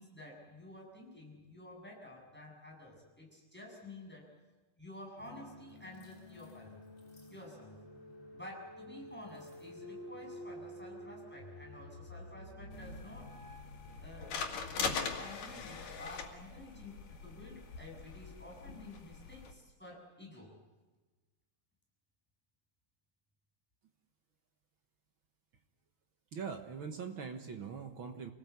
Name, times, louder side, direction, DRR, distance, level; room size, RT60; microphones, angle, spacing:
voice 1, 0.0-4.3 4.8-6.8 7.3-7.8 8.3-13.3 14.0-14.4 14.7-20.5, left 1 dB, 5° left, -2 dB, 7.4 m, -51 dB
sound 1, 5.2-14.8, left 1 dB, 25° left, 3.6 m, -51 dB
sound 2, 12.7-19.5, left 5 dB, 85° left, 3.9 m, -42 dB
voice 2, 26.3-28.3, right 6 dB, 55° right, 5 dB, 1.6 m, -42 dB
27.5 x 19.0 x 8.4 m, 1.3 s
omnidirectional pair, 3.7 m